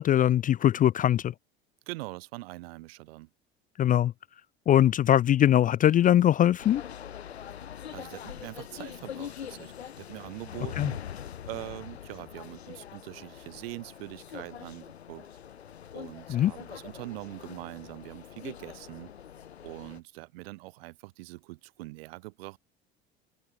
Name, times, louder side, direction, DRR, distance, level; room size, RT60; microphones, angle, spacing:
voice 1, 0.0-1.3 3.8-4.1 4.7-6.8 10.8-10.9 16.3-16.5, left 11 dB, 25° left, 0.5 m, -21 dB
voice 2, 1.9-3.3 7.9-11.0 11.5-15.3 15.9-19.1 19.6-22.6, right 21 dB, 65° right, 3.0 m, -43 dB
sound 1, 6.6-20.0, left 9 dB, 75° left, 3.7 m, -43 dB
open air
figure-of-eight pair, 70°, 32 cm